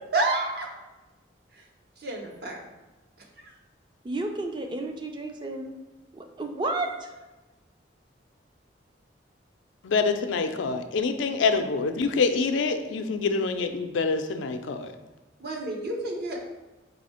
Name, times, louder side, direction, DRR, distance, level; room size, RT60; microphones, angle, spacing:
voice 1, 0.1-0.7 2.0-2.6 15.4-16.4, right 2 dB, 55° right, 0 dB, 0.8 m, -29 dB
voice 2, 4.0-5.7 6.1-7.1, right 2 dB, 25° right, 4 dB, 0.4 m, -32 dB
voice 3, 9.8-14.9, left 4 dB, 90° left, 8 dB, 0.4 m, -26 dB
4.2 x 2.7 x 4.2 m, 1.1 s
head